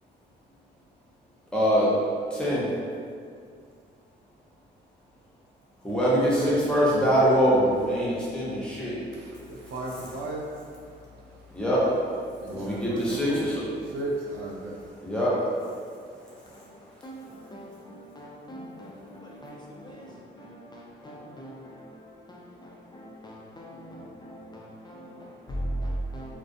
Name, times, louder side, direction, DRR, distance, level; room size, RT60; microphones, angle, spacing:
voice 1, 1.5-2.7 5.8-9.0 11.5-12.0 12.5-13.6 15.0-15.6, equal, 5° left, -8 dB, 0.7 m, -23 dB
voice 2, 6.1-6.5 8.0-11.6 12.3-13.4 13.8-14.9, right 1 dB, 85° right, -2 dB, 0.5 m, -37 dB
voice 3, 16.5-26.3, right 1 dB, 20° left, -4 dB, 0.3 m, -40 dB
2.3 x 2.1 x 2.6 m, 2.2 s
cardioid pair, 90°, 20 cm